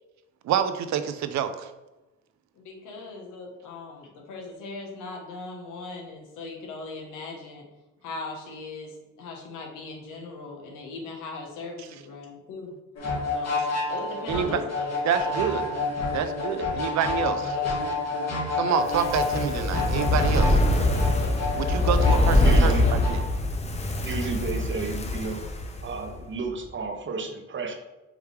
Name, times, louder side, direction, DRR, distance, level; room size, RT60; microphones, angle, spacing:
voice 1, 0.4-1.7 14.3-14.6 15.0-15.7 16.1-17.6 18.6-20.6 21.6-23.2, right 8 dB, 65° right, 10 dB, 0.5 m, -27 dB
voice 2, 2.5-7.7 8.0-12.7 13.3-13.6 13.9-14.6, left 3 dB, 90° left, 1 dB, 1.1 m, -39 dB
sound 1, 13.0-23.1, left 3 dB, 55° left, 1.4 m, -29 dB
Fire, 18.8-26.1 26.4-26.5, left 1 dB, 20° left, 0.6 m, -23 dB
voice 3, 22.4-22.8 24.0-25.4 25.8-27.7, right 4 dB, 40° right, 4 dB, 0.8 m, -32 dB
5.0 x 3.1 x 3.2 m, 1.0 s
cardioid pair, 90°, 30 cm